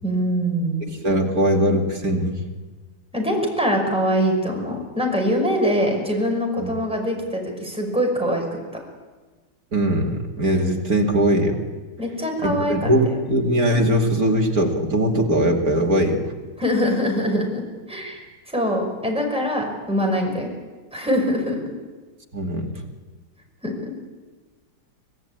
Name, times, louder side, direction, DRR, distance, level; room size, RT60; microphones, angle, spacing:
voice 1, 0.0-0.9 3.1-8.4 12.0-13.2 16.6-17.6 17.9-18.2 18.5-20.5 20.9-21.6 23.6-23.9, equal, 5° right, 0 dB, 5.6 m, -23 dB
voice 2, 1.0-2.4 6.6-6.7 9.7-11.6 12.4-16.2 22.3-22.7, right 1 dB, 45° right, 1 dB, 2.9 m, -20 dB
25.5 x 17.5 x 8.9 m, 1.3 s
omnidirectional pair, 2.3 m